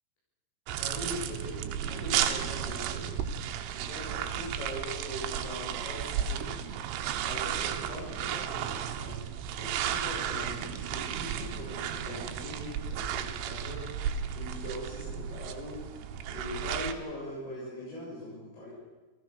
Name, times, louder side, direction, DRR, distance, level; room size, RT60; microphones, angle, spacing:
sound 1, 0.7-16.9, right 9 dB, 80° right, 3.6 m, -34 dB
voice 1, 0.8-3.1 3.7-6.5 7.2-9.2 9.6-15.8 16.3-18.7, left 1 dB, 50° left, -8 dB, 8.8 m, -41 dB
29.5 x 16.0 x 6.7 m, 1.2 s
omnidirectional pair, 5.8 m